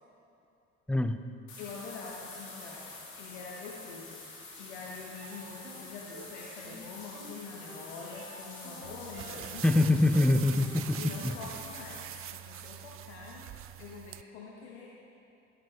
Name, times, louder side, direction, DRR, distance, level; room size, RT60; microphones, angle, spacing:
voice 1, 0.9-1.2 9.6-11.4, left 2 dB, 5° left, 9 dB, 0.6 m, -25 dB
sound 1, 1.5-12.0, left 3 dB, 70° left, 2.7 m, -47 dB
voice 2, 1.6-4.2 4.6-9.9 10.9-13.5 13.8-14.9, left 4 dB, 85° left, -3 dB, 1.0 m, -45 dB
sound 2, 5.1-5.2 5.6-5.7 6.1-6.2 6.6-6.7 7.1-7.2 7.6-7.7 8.1-8.2 8.6-8.7 9.1-9.2 9.6-9.7 10.1-10.2 10.6-10.7 11.1-11.2, right 7 dB, 80° right, 2.7 m, -50 dB
sound 3, 8.8-14.2, right 13 dB, 45° right, 0.4 m, -44 dB
13.5 x 6.7 x 4.9 m, 2.7 s
hypercardioid pair, 60°, 32 cm